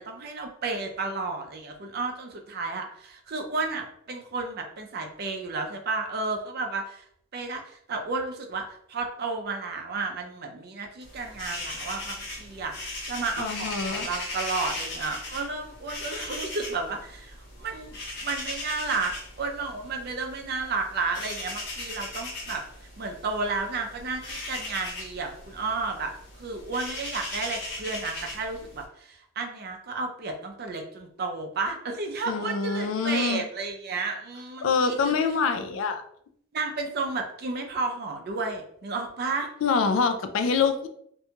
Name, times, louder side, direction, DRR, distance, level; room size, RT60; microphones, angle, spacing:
voice 1, 0.0-7.0 7.3-26.1 26.4-35.1 36.5-39.5, right 3 dB, 55° right, 3 dB, 0.5 m, -32 dB
sound 1, 11.0-28.8, left 2 dB, 60° left, 0.7 m, -38 dB
voice 2, 13.4-14.1 32.3-33.4 34.6-36.0 39.6-40.9, left 5 dB, 80° left, 8 dB, 0.3 m, -25 dB
2.6 x 2.2 x 2.8 m, 0.68 s
head